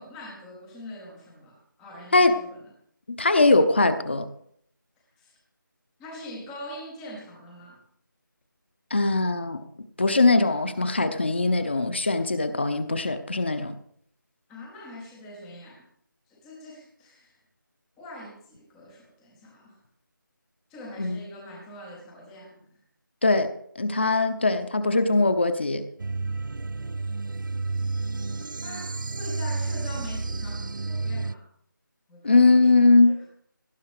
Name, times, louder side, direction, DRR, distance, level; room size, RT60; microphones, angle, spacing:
voice 1, 0.0-2.6 5.2-5.3 6.0-7.8 14.5-15.9 16.3-17.4 18.0-19.8 20.7-22.8 28.6-31.5 32.1-33.3, left 1 dB, ahead, -1 dB, 0.6 m, -43 dB
voice 2, 3.2-4.2 8.9-9.6 10.0-13.7 21.0-21.2 23.2-23.5 23.8-25.8 32.2-33.2, left 3 dB, 30° left, 9 dB, 0.9 m, -21 dB
sound 1, 26.0-31.3, right 3 dB, 70° right, 0.5 m, -31 dB
18.0 x 11.0 x 4.9 m, 0.66 s
figure-of-eight pair, 175°, 11 cm